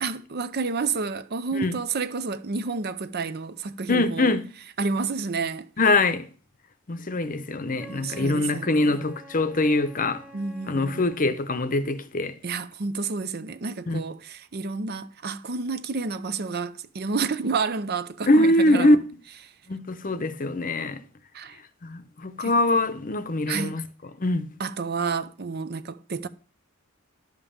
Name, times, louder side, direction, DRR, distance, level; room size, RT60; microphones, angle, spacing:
voice 1, 0.0-4.3 4.8-5.7 7.9-9.0 10.3-11.1 12.4-19.0 21.3-21.6 22.4-22.5 23.5-23.8 24.6-26.3, right 4 dB, 45° right, 0.6 m, -30 dB
voice 2, 3.9-4.4 5.8-6.3 6.9-10.2 10.7-12.4 13.9-14.0 18.3-19.0 19.7-21.0 21.8-23.8 24.2-24.5, left 2 dB, 40° left, 0.8 m, -23 dB
Wind instrument woodwind instrument, 7.7-11.3, right 1 dB, 5° right, 1.3 m, -48 dB
11.0 x 5.4 x 7.1 m
head